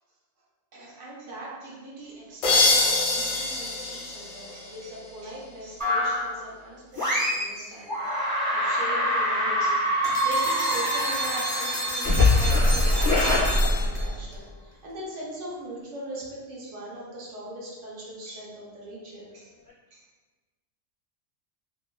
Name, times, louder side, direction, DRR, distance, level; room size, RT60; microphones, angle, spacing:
voice 1, 0.7-8.0 8.5-9.9 10.2-14.4 14.8-19.5 19.9-20.0, right 1 dB, 70° right, -5 dB, 1.1 m, -40 dB
sound 1, 2.4-5.2, left 3 dB, 85° left, 1.1 m, -25 dB
sound 2, 5.8-6.4 6.9-7.6 7.9-14.3, left 1 dB, 20° right, 0.7 m, -24 dB
sound 3, 10.0-14.3, equal, 45° left, 0.6 m, -32 dB
3.3 x 2.2 x 2.2 m, 1.2 s
omnidirectional pair, 1.4 m